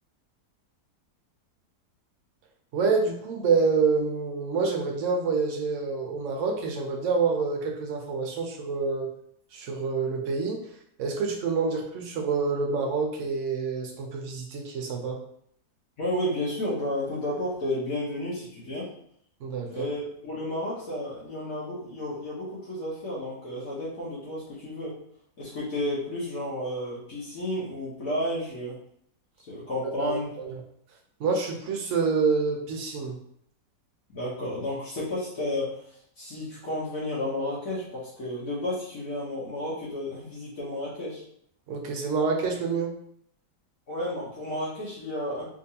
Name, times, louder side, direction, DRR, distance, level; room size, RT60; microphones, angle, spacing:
voice 1, 2.7-9.1 9.5-10.6 11.0-15.2 19.4-19.9 30.0-30.5 31.2-33.2 41.7-42.9, right 4 dB, 65° right, 2 dB, 0.8 m, -27 dB
voice 2, 16.0-18.9 19.6-25.0 25.4-28.8 29.5-30.3 34.1-41.2 43.9-45.5, left 1 dB, 55° left, -8 dB, 1.4 m, -32 dB
3.5 x 2.8 x 2.8 m, 0.67 s
omnidirectional pair, 1.8 m